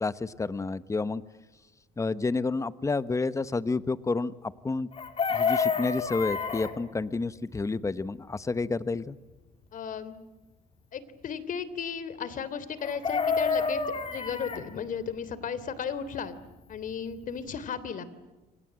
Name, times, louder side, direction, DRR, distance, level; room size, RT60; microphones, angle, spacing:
voice 1, 0.0-1.2 2.0-4.9 5.3-9.2, left 3 dB, 20° left, 14 dB, 1.2 m, -30 dB
Chicken rooster, 4.9-6.7 12.8-14.6 16.9-17.0 17.2-17.5, left 5 dB, 35° left, 4.0 m, -28 dB
voice 2, 9.7-10.2 10.9-13.8 14.1-16.4 16.7-18.0, left 7 dB, 50° left, 15 dB, 3.3 m, -35 dB
30.0 x 26.0 x 7.7 m, 1.1 s
cardioid pair, 110°, 17 cm